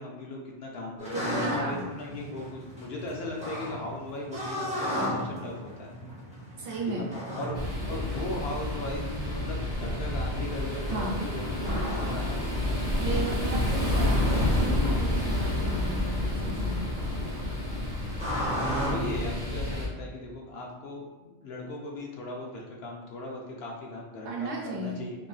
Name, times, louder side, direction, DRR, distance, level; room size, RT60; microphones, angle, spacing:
voice 1, 0.0-5.9 6.9-7.0 7.4-7.6 7.9-12.9 17.9-18.2 18.8-25.2, left 2 dB, 70° left, 0 dB, 0.8 m, -38 dB
sound 1, 1.0-19.2, equal, 10° right, 0.6 m, -36 dB
voice 2, 1.1-1.9 6.6-7.0 10.8-11.2 13.0-16.8 24.2-25.3, right 2 dB, 85° right, -2 dB, 1.0 m, -35 dB
sound 2, 7.5-19.9, left 1 dB, 35° right, 0.8 m, -29 dB
2.9 x 2.5 x 2.3 m, 1.2 s
omnidirectional pair, 1.1 m